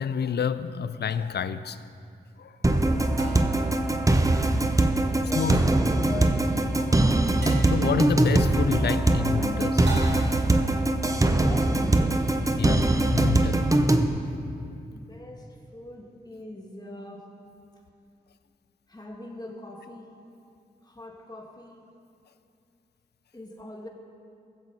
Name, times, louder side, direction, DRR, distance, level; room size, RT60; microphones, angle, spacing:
voice 1, 0.0-1.9 2.4-2.8 3.8-4.0 5.3-5.6 6.7-10.8 12.6-13.7, left 7 dB, 70° left, 14 dB, 0.5 m, -30 dB
sound 1, 1.1-1.2 3.2-3.7 5.5-5.9 7.4-7.8 9.9-10.5, right 1 dB, 75° right, 2.2 m, -38 dB
sound 2, 2.6-14.1, right 2 dB, 20° right, 0.8 m, -22 dB
voice 2, 5.1-6.5 11.4-12.2 14.8-15.5 15.7-17.3 18.9-20.1 20.9-21.8 23.3-23.9, left 2 dB, 20° left, 0 dB, 2.1 m, -41 dB
16.0 x 7.5 x 4.1 m, 2.4 s
cardioid pair, 45°, 18 cm